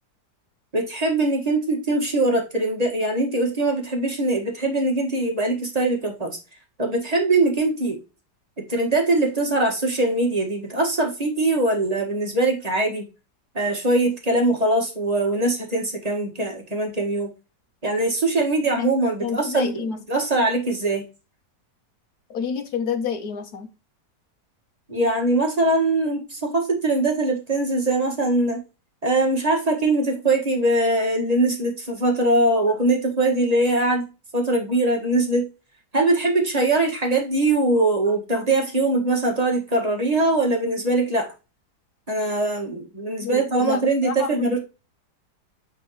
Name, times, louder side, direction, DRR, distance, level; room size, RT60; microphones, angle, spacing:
voice 1, 0.7-6.4 6.8-8.0 8.6-13.0 13.5-17.3 17.8-19.8 20.1-21.0 24.9-28.6 29.0-34.1 34.3-35.4 35.9-41.3 42.1-44.6, right 2 dB, 25° right, 1.7 m, -22 dB
voice 2, 19.2-20.0 22.3-23.7 43.2-44.6, left 6 dB, 65° left, 1.5 m, -29 dB
9.0 x 4.0 x 3.1 m
omnidirectional pair, 1.8 m